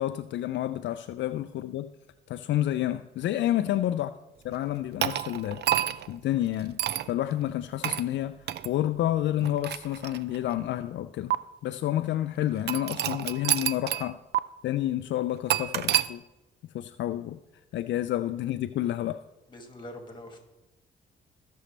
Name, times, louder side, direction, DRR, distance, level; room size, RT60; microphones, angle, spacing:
voice 1, 0.0-1.9 2.3-4.1 4.4-6.8 7.1-11.3 11.6-14.2 14.6-16.2 16.7-17.4 17.7-19.2, left 13 dB, 65° left, 0.4 m, -29 dB
sound 1, 5.0-6.1 6.8-7.1 7.8-8.1 8.5-8.7 9.4-10.5 11.3-11.4 12.7-14.1 14.3-14.4 15.5-16.1, right 11 dB, 60° right, 0.5 m, -28 dB
voice 2, 19.5-20.4, left 1 dB, 25° left, 2.3 m, -44 dB
16.5 x 6.3 x 3.3 m
cardioid pair, 90°, 20 cm